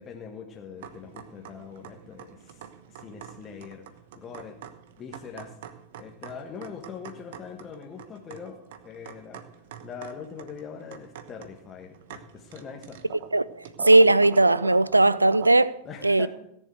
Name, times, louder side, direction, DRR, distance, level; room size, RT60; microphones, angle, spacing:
voice 1, 0.0-4.6 5.0-5.6 6.0-9.4 9.8-13.0 15.8-16.3, left 6 dB, 25° left, 1.6 m, -42 dB
sound 1, 0.8-15.5, right 9 dB, 55° right, 1.1 m, -43 dB
voice 2, 13.3-15.8 16.0-16.3, right 2 dB, 85° right, 0.5 m, -18 dB
17.0 x 7.3 x 7.9 m
figure-of-eight pair, 90°, 0 cm